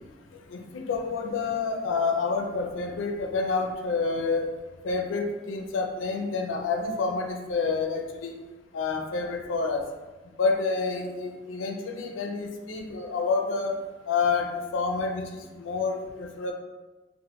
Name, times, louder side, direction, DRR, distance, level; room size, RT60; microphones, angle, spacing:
voice 1, 0.5-4.5 4.8-8.4 8.7-9.8 10.4-13.8 14.1-15.3 15.6-16.5, left 4 dB, 90° left, 3 dB, 0.4 m, -28 dB
2.9 x 2.1 x 2.9 m, 1.2 s
head